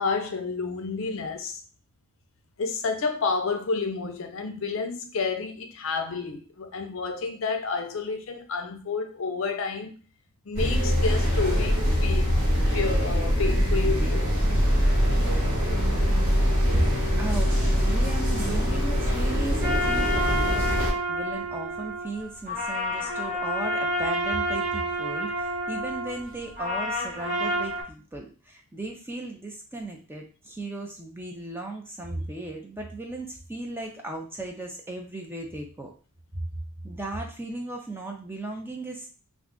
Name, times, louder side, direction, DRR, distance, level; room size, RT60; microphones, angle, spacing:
voice 1, 0.0-1.6 2.6-9.9 10.4-14.3, left 4 dB, 60° left, 0.5 m, -30 dB
sound 1, 10.5-20.9, equal, 75° right, 1.5 m, -23 dB
voice 2, 16.7-35.9 36.3-36.4 36.8-39.1, right 2 dB, 10° right, 0.4 m, -36 dB
sound 2, 19.6-27.8, equal, 35° right, 1.1 m, -29 dB
2.5 x 2.3 x 3.7 m
head